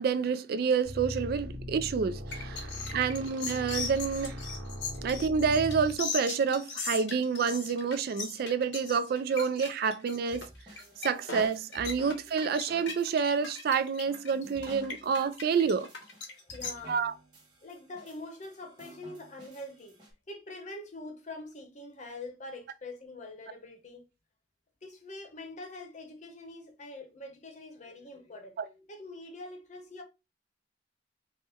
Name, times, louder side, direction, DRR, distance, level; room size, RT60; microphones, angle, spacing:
voice 1, 0.0-2.6 2.9-4.4 5.0-10.5 11.0-15.9 16.9-17.1 28.6-28.7, right 6 dB, 55° right, 0.3 m, -28 dB
sound 1, 0.8-5.9, left 1 dB, 80° right, 1.1 m, -39 dB
sound 2, 2.3-16.7, left 5 dB, 75° left, 1.0 m, -38 dB
voice 2, 2.5-3.3 10.8-11.3 11.9-12.4 16.1-17.1 17.6-20.0 20.3-24.0 24.8-30.0, left 2 dB, 40° left, 0.8 m, -45 dB
sound 3, 9.1-20.1, right 1 dB, 25° right, 1.3 m, -53 dB
4.3 x 2.1 x 3.4 m
head